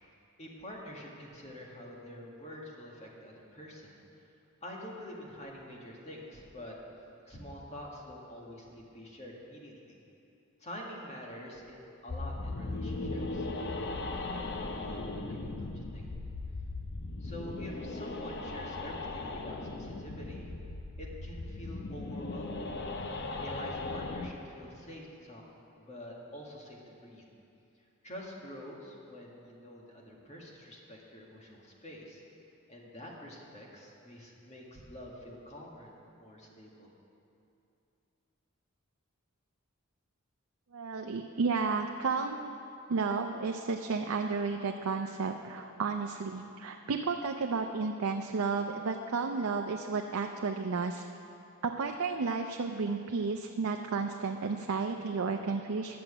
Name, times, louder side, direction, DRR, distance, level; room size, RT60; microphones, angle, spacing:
voice 1, 0.4-4.0 4.6-6.8 7.3-10.0 10.6-13.5 14.8-16.1 17.2-20.5 21.0-22.7 23.0-25.4 25.8-27.3 28.0-32.2 32.7-36.9, equal, 35° left, -3 dB, 1.8 m, -47 dB
sound 1, 12.1-24.3, left 2 dB, 55° left, 0.7 m, -38 dB
voice 2, 40.7-42.5 42.9-51.1 51.6-56.0, right 4 dB, 85° right, 4 dB, 0.5 m, -32 dB
11.0 x 6.1 x 8.7 m, 2.7 s
head